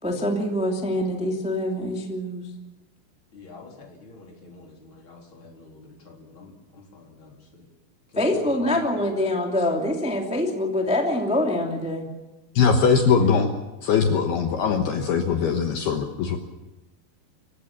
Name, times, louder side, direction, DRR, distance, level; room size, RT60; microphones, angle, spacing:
voice 1, 0.0-2.4 8.1-12.0, left 1 dB, 5° right, 1 dB, 0.9 m, -25 dB
voice 2, 3.3-7.6 8.1-9.1 13.2-13.4 14.1-14.2, left 3 dB, 30° left, 1 dB, 3.8 m, -45 dB
voice 3, 12.6-13.5 13.8-16.4, left 6 dB, 65° left, 5 dB, 2.8 m, -21 dB
25.5 x 16.0 x 7.3 m, 1.1 s
omnidirectional pair, 5.6 m